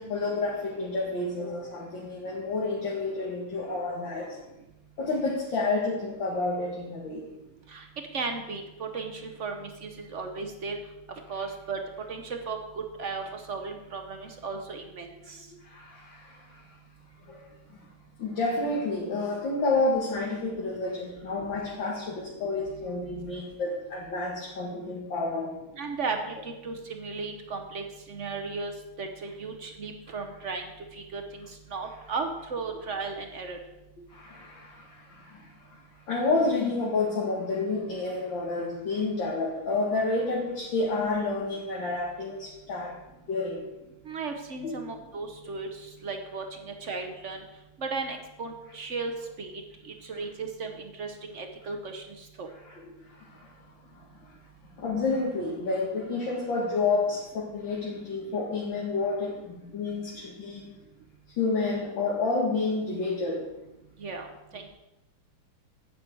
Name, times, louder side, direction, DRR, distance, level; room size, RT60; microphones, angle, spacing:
voice 1, 0.0-4.4 5.0-7.3 15.6-16.8 17.3-17.8 18.2-25.5 34.1-35.8 36.1-43.0 43.3-43.6 44.6-44.8 52.7-53.6 53.9-54.3 54.7-60.7 61.4-63.5, left 3 dB, 65° left, -4 dB, 2.3 m, -30 dB
voice 2, 8.1-10.8 11.3-11.8 12.1-15.4 23.1-23.2 25.8-28.7 29.0-30.6 30.9-33.6 44.1-47.4 47.8-49.1 49.4-50.7 51.0-52.5 64.0-64.3 64.5-64.7, right 4 dB, 55° right, 4 dB, 0.8 m, -35 dB
9.7 x 8.2 x 4.6 m, 0.97 s
omnidirectional pair, 2.3 m